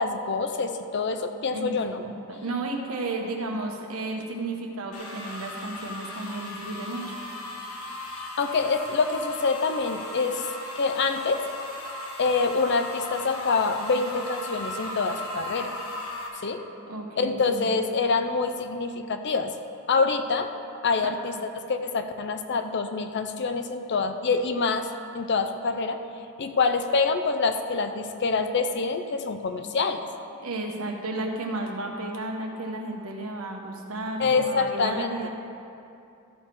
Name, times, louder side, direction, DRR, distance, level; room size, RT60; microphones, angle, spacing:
voice 1, 0.0-2.0 8.2-10.4 10.8-11.4 12.2-15.7 16.4-16.6 17.2-19.5 19.9-20.5 20.8-24.9 25.1-26.0 26.4-30.1 34.2-35.1, left 4 dB, 50° left, 7 dB, 0.5 m, -26 dB
voice 2, 2.0-7.2 16.9-17.7 21.0-21.2 30.4-35.3, right 2 dB, 75° right, 2 dB, 1.2 m, -33 dB
sound 1, 4.9-16.3, left 1 dB, 90° left, 1.4 m, -37 dB
13.5 x 6.1 x 4.6 m, 2.7 s
head